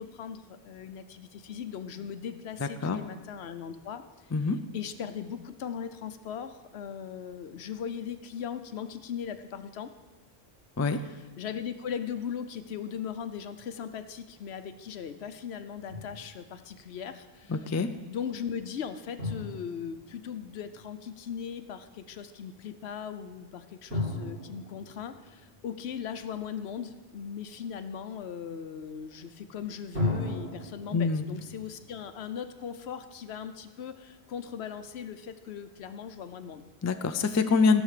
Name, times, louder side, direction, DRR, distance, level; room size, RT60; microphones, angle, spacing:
voice 1, 0.0-4.0 4.7-9.9 11.0-17.6 18.1-36.6, left 8 dB, 75° left, 10 dB, 1.0 m, -39 dB
voice 2, 2.6-3.0 4.3-4.6 10.8-11.0 17.5-17.9 30.9-31.2 36.8-37.8, left 4 dB, 25° left, 9 dB, 0.3 m, -25 dB
Drum, 15.9-16.6 19.2-21.0 23.9-26.4 29.9-33.1, left 2 dB, 55° right, 4.4 m, -37 dB
14.5 x 6.3 x 6.6 m, 1.2 s
omnidirectional pair, 1.1 m